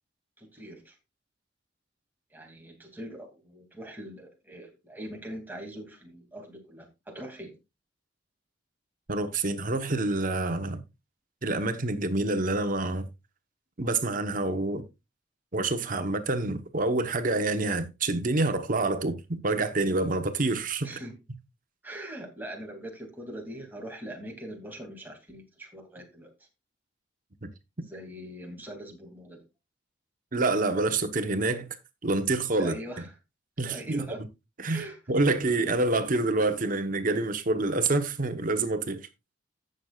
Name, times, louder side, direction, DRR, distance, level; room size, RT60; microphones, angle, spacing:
voice 1, 0.4-1.0 2.3-7.5 20.8-21.2 21.8-26.5 27.8-29.4 32.6-33.1 33.6-34.2 34.7-35.0, right 1 dB, 10° right, 2.5 m, -42 dB
voice 2, 9.1-10.8 11.4-13.1 13.8-14.8 15.5-20.9 27.4-27.5 30.3-31.7 32.0-32.7 33.6-34.0 34.6-39.0, right 2 dB, 50° right, 1.0 m, -27 dB
16.5 x 6.5 x 2.4 m
head